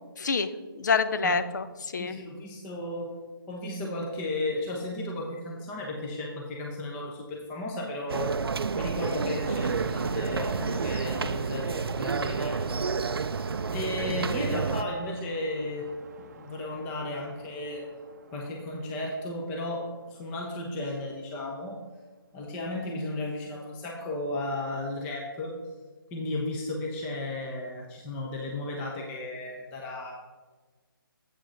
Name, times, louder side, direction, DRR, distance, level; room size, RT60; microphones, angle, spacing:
voice 1, 0.2-2.2, left 5 dB, 50° left, 11 dB, 0.6 m, -27 dB
voice 2, 2.0-3.1 3.5-8.4 8.7-13.0 13.7-15.9 16.4-17.8 18.3-21.8 22.3-25.6 26.1-30.2, left 2 dB, 10° left, -1 dB, 0.7 m, -34 dB
sound 1, 8.1-14.8, right 5 dB, 85° right, 0.4 m, -30 dB
sound 2, 9.4-20.2, right 4 dB, 45° right, 0.7 m, -43 dB
7.9 x 4.7 x 5.7 m, 1.3 s
figure-of-eight pair, 160°, 12 cm